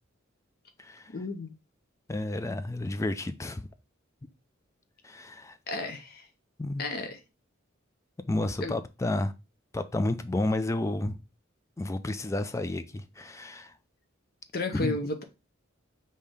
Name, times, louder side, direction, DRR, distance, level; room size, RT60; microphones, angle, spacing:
voice 1, 1.1-1.5 5.7-6.2 6.8-7.2 8.6-8.7 14.5-15.2, left 3 dB, 50° left, 0.7 m, -33 dB
voice 2, 2.1-3.6 5.0-5.6 6.6-6.8 8.3-9.3 9.7-11.2 11.8-13.7 14.7-15.0, left 2 dB, 15° left, 0.3 m, -31 dB
5.3 x 2.8 x 3.3 m
head